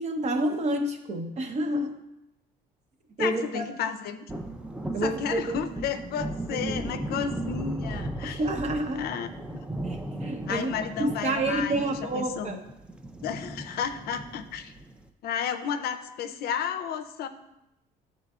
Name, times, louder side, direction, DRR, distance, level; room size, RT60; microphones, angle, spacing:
voice 1, 0.0-2.0 3.2-3.6 4.9-5.6 6.5-6.8 8.3-9.1 9.8-10.7 11.0-12.6, right 1 dB, 40° right, 4 dB, 0.9 m, -29 dB
voice 2, 3.2-4.3 5.0-8.4 8.9-9.6 10.5-12.6 13.2-14.7 15.2-17.3, left 7 dB, 65° left, 9 dB, 0.5 m, -32 dB
sound 1, 4.3-15.1, right 1 dB, 5° right, 0.4 m, -37 dB
11.0 x 3.9 x 2.4 m, 0.89 s
cardioid pair, 110°, 17 cm